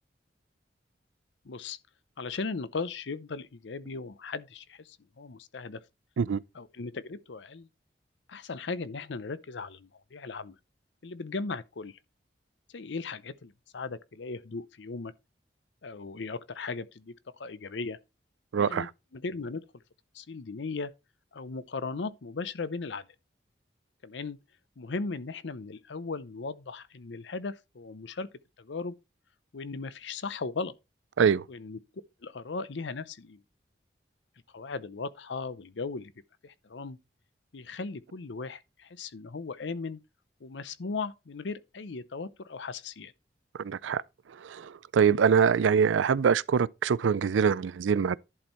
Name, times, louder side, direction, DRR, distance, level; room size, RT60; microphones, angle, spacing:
voice 1, 1.4-1.8 2.2-5.8 6.5-7.7 8.3-10.6 11.0-12.0 12.7-15.1 15.8-18.0 18.6-19.6 20.1-20.9 21.3-23.1 24.0-24.4 24.8-28.3 28.6-28.9 29.5-30.7 31.5-31.8 32.2-33.4 34.5-36.1 36.4-37.0 37.5-40.0 40.4-43.1, left 4 dB, 75° left, 0.6 m, -37 dB
voice 2, 18.5-18.9 31.2-31.4 43.6-44.0 44.4-48.2, right 6 dB, 90° right, 0.4 m, -24 dB
11.0 x 4.4 x 4.3 m
head